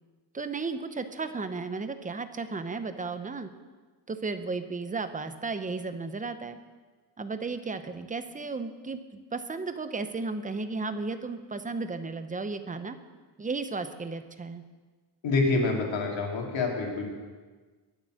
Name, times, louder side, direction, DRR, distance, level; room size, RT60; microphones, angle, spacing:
voice 1, 0.3-3.5 4.1-6.6 7.2-9.0 9.3-13.0 13.4-14.6, right 3 dB, 15° right, 10 dB, 0.7 m, -34 dB
voice 2, 15.2-17.1, left 3 dB, 75° left, 0 dB, 3.0 m, -27 dB
22.0 x 7.8 x 6.4 m, 1.4 s
wide cardioid pair, 175°, 46 cm